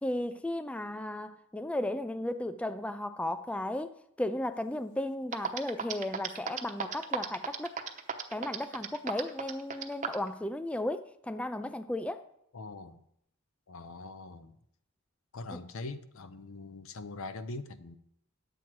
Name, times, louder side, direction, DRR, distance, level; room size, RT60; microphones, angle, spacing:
voice 1, 0.0-7.8 8.3-12.2 15.5-15.6, left 1 dB, 5° left, 0.3 m, -35 dB
sound 1, 5.0-5.1 5.3-10.3, right 7 dB, 40° right, 0.9 m, -34 dB
voice 2, 12.5-13.0 13.7-14.6 15.3-18.0, left 3 dB, 70° left, 0.7 m, -42 dB
10.5 x 7.9 x 4.6 m
head